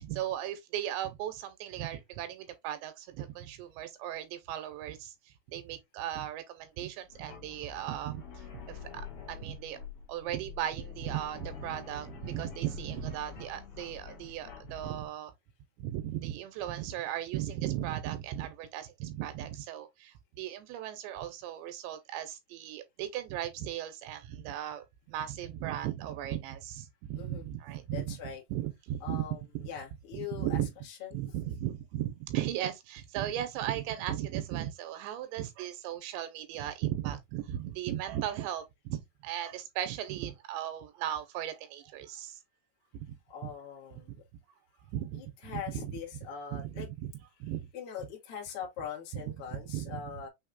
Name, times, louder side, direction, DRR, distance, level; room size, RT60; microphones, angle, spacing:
voice 1, 0.0-5.1 5.5-8.2 8.5-9.8 10.1-15.3 15.8-28.2 28.5-29.3 29.5-29.7 30.1-30.7 31.1-42.4 42.9-43.1 43.4-43.5 44.9-46.0 46.5-47.1 47.4-47.7 49.3-50.0, right 12 dB, 85° right, 2.9 m, -37 dB
sound 1, 7.1-15.1, left 6 dB, 75° left, 1.3 m, -47 dB
voice 2, 27.9-28.4 29.0-29.4 29.6-30.6 30.8-31.2 43.3-44.2 45.1-46.9 47.7-50.3, left 8 dB, 55° left, 1.5 m, -42 dB
6.5 x 3.1 x 2.4 m
omnidirectional pair, 5.2 m